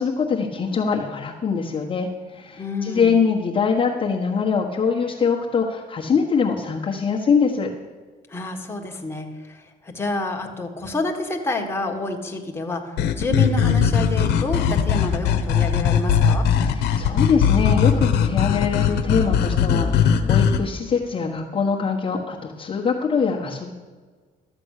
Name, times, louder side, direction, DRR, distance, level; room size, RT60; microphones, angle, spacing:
voice 1, 0.0-7.7 16.6-23.7, left 5 dB, 30° left, -3 dB, 1.4 m, -23 dB
voice 2, 2.5-3.2 8.3-16.5, left 2 dB, 15° left, 1 dB, 1.7 m, -28 dB
sound 1, 13.0-20.6, left 7 dB, 80° left, 1.0 m, -19 dB
13.0 x 7.5 x 6.6 m, 1.4 s
cardioid pair, 110°, 17 cm